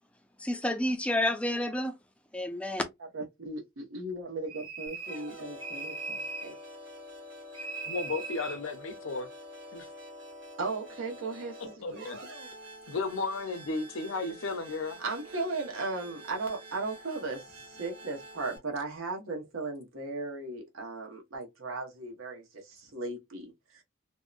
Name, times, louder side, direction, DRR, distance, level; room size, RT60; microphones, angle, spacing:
voice 1, 0.4-1.9 2.3-2.8, left 1 dB, 5° left, 0.3 m, -29 dB
voice 2, 3.1-6.5 10.6-12.0 15.0-23.8, right 3 dB, 85° right, 1.0 m, -37 dB
sound 1, 4.5-5.3 5.6-6.6 7.5-8.6, right 3 dB, 25° right, 0.7 m, -39 dB
sound 2, 4.9-18.6, equal, 60° right, 1.4 m, -47 dB
voice 3, 7.9-9.3 9.7-9.9 11.8-12.2 12.9-15.0, left 3 dB, 80° left, 0.6 m, -34 dB
2.7 x 2.1 x 2.4 m
head